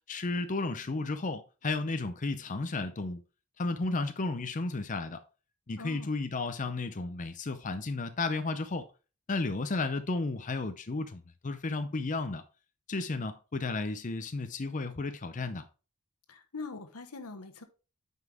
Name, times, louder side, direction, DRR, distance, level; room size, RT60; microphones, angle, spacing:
voice 1, 0.1-3.2 3.6-5.2 5.7-8.9 9.3-12.4 12.9-15.7, left 3 dB, 35° left, 0.6 m, -33 dB
voice 2, 5.8-6.1 16.3-17.6, left 3 dB, 85° left, 1.2 m, -43 dB
9.5 x 5.6 x 3.4 m
head